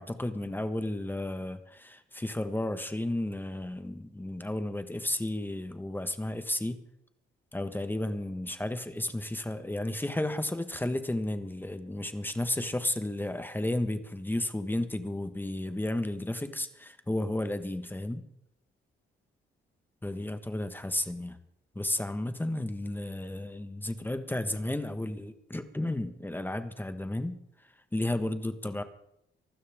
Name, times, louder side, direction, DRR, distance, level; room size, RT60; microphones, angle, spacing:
voice 1, 0.0-6.8 7.5-18.2 20.0-21.4 21.7-27.4 27.9-28.8, left 1 dB, 10° left, 8 dB, 1.5 m, -33 dB
24.5 x 12.5 x 3.7 m, 0.76 s
cardioid pair, 90°, 20 cm